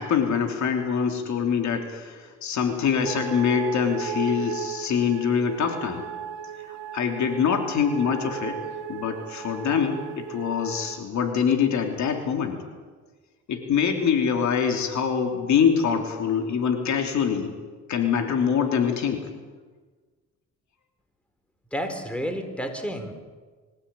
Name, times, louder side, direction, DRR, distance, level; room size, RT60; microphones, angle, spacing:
voice 1, 0.0-6.0 6.7-8.6 8.9-12.6 13.5-17.5 17.9-19.3, left 7 dB, 70° left, 4 dB, 3.1 m, -24 dB
sound 1, 3.0-11.0, right 9 dB, 90° right, 1.8 m, -36 dB
voice 2, 21.7-23.1, equal, 5° left, 6 dB, 4.1 m, -30 dB
25.5 x 15.5 x 8.9 m, 1.4 s
cardioid pair, 90°, 30 cm